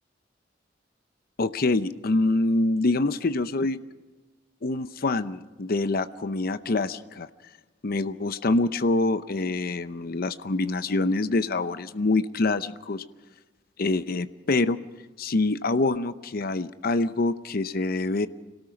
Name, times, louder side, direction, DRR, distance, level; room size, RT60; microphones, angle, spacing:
voice 1, 1.4-3.8 4.6-7.3 7.8-13.0 13.8-14.8 15.2-18.3, left 2 dB, 50° left, 12 dB, 0.7 m, -25 dB
26.0 x 18.0 x 5.9 m, 1.2 s
head